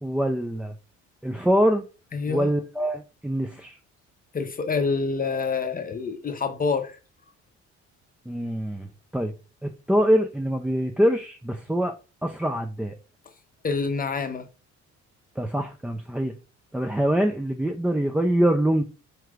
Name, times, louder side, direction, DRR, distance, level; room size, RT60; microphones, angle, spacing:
voice 1, 0.0-0.7 1.2-1.8 2.3-3.8 8.3-8.9 9.1-9.3 9.9-11.9 12.2-12.9 15.4-16.4 16.7-18.8, equal, 5° right, 0.3 m, -24 dB
voice 2, 2.1-2.5 4.3-7.0 13.6-14.5, left 4 dB, 30° left, 0.6 m, -27 dB
4.5 x 3.1 x 2.4 m
cardioid pair, 105°, 30 cm